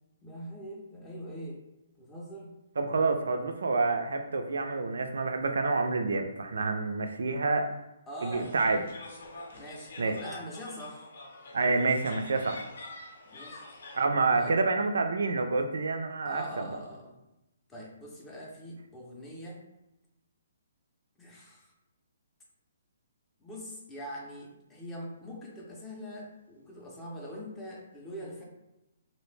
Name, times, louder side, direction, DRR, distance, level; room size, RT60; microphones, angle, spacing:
voice 1, 0.2-1.6 2.0-2.5 8.1-8.5 9.5-11.1 13.3-13.6 14.4-14.6 16.3-17.2 17.7-19.6 21.2-21.7 23.4-28.5, equal, 10° left, -3 dB, 0.4 m, -43 dB
voice 2, 2.8-7.7 8.2-8.8 10.0-10.1 11.5-12.6 13.9-16.4, right 3 dB, 80° right, 5 dB, 0.3 m, -28 dB
sound 1, 8.3-14.0, left 2 dB, 60° left, 0.6 m, -46 dB
2.7 x 2.1 x 3.1 m, 0.92 s
hypercardioid pair, 170°, 0 cm